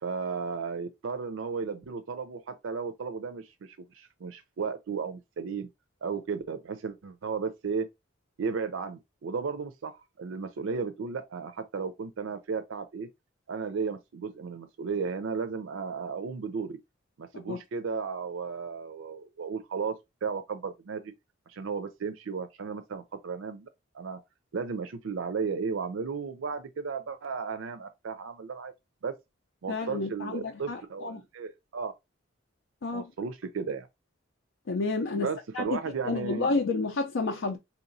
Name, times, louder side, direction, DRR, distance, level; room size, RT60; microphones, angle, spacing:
voice 1, 0.0-5.7 6.0-7.9 8.4-13.1 13.5-16.8 17.2-20.0 20.2-21.1 21.5-23.7 23.9-24.2 24.5-28.7 29.0-29.1 29.6-31.9 32.9-33.9 35.1-36.5, right 5 dB, 90° right, 0.5 m, -34 dB
voice 2, 29.7-31.2 32.8-33.0 34.7-35.8 36.0-37.6, left 3 dB, 80° left, 0.5 m, -30 dB
4.2 x 2.9 x 2.6 m
head